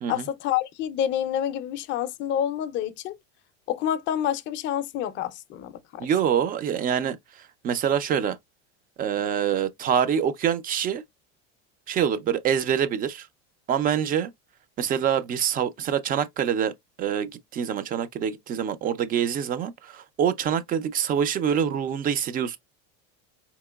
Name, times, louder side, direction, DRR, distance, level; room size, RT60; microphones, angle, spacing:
voice 1, 0.1-3.1 3.7-6.1, left 10 dB, 35° left, 0.4 m, -28 dB
voice 2, 6.0-7.2 7.6-8.4 9.0-11.0 11.9-13.3 13.7-14.3 14.8-22.6, right 8 dB, 25° right, 0.4 m, -25 dB
4.3 x 2.9 x 2.2 m
supercardioid pair, 140°, 33 cm